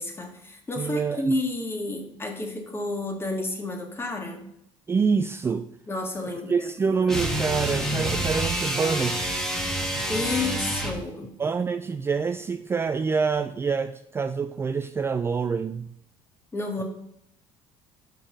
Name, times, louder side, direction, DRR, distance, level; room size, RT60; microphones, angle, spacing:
voice 1, 0.0-4.4 5.9-6.7 10.1-11.3 16.5-16.8, left 2 dB, 20° left, 1.6 m, -30 dB
voice 2, 0.8-1.3 4.9-5.7 6.5-9.4 11.4-15.9, right 5 dB, 20° right, 0.3 m, -26 dB
sound 1, 7.1-11.1, right 1 dB, 5° left, 1.6 m, -27 dB
5.2 x 5.1 x 5.4 m
supercardioid pair, 90°, 11 cm